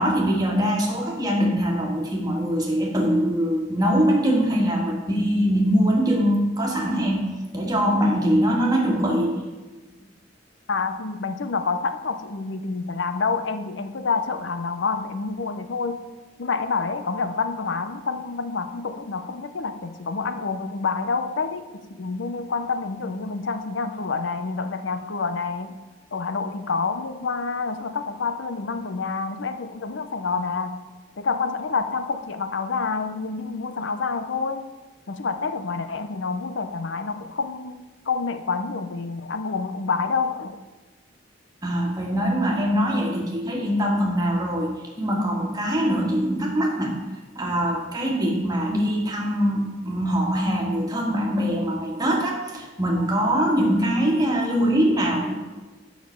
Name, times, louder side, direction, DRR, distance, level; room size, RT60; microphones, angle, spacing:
voice 1, 0.0-7.2 7.5-9.4 41.6-46.9 47.4-55.3, equal, 20° right, -1 dB, 1.7 m, -23 dB
voice 2, 10.7-16.0 16.4-25.8 26.1-30.8 31.2-34.7 35.1-40.6, left 4 dB, 80° left, 9 dB, 0.6 m, -28 dB
8.6 x 5.7 x 7.2 m, 1.2 s
head